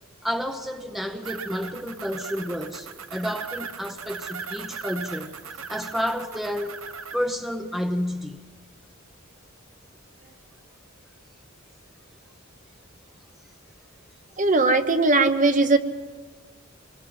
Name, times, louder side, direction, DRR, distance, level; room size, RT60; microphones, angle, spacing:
voice 1, 0.2-5.4 5.7-6.8 7.1-8.4, equal, ahead, 0.8 m, -30 dB
sound 1, 1.2-7.2, right 5 dB, 75° right, 1.1 m, -38 dB
voice 2, 14.4-15.8, right 3 dB, 40° right, 1.1 m, -19 dB
25.0 x 21.5 x 5.5 m
head